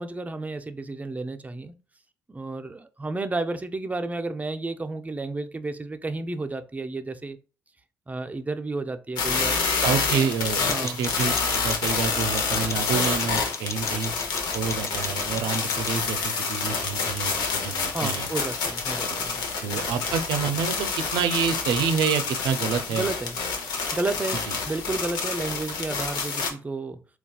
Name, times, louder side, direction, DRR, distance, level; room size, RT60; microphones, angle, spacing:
voice 1, 0.0-1.7 2.3-7.4 8.1-9.6 10.6-11.0 17.9-19.7 22.9-23.4 23.9-27.0, right 3 dB, 20° right, 0.5 m, -32 dB
sound 1, 9.2-26.5, left 4 dB, 75° left, 0.8 m, -28 dB
voice 2, 9.8-11.3 11.6-14.1 14.5-18.3 19.1-19.2 19.6-23.0 24.5-24.6, right 6 dB, 70° right, 0.5 m, -28 dB
sound 2, 10.7-16.0, left 5 dB, 40° left, 0.4 m, -38 dB
3.9 x 2.3 x 2.3 m
hypercardioid pair, 55°, 7 cm